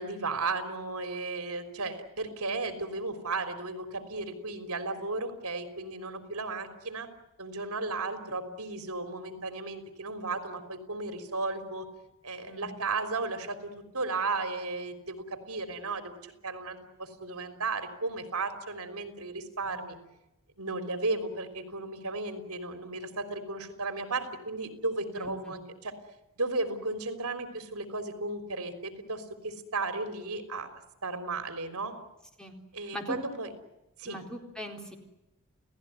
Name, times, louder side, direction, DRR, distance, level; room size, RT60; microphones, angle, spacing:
voice 1, 0.0-7.1 7.4-11.9 12.2-20.0 20.6-25.9 26.4-30.7 31.0-32.0 32.7-33.5 34.0-34.2, right 3 dB, 75° right, 9 dB, 3.7 m, -35 dB
voice 2, 25.2-25.5 32.4-32.5 32.9-33.2 34.0-35.0, left 1 dB, 5° left, 3 dB, 4.1 m, -40 dB
29.5 x 17.5 x 9.5 m, 0.95 s
head